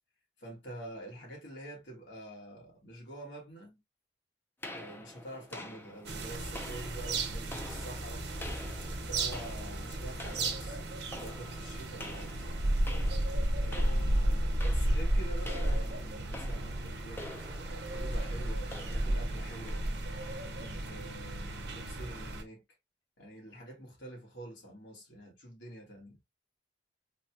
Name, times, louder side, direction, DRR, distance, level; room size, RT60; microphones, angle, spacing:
voice 1, 0.4-3.8 4.7-8.3 9.0-12.5 13.6-17.6 17.9-19.9 20.4-22.6 23.2-26.2, right 1 dB, 80° left, 1.8 m, -47 dB
sound 1, 4.6-21.0, left 1 dB, 10° left, 0.6 m, -48 dB
sound 2, 6.0-22.4, right 1 dB, 70° right, 0.9 m, -33 dB
3.9 x 2.3 x 2.7 m
head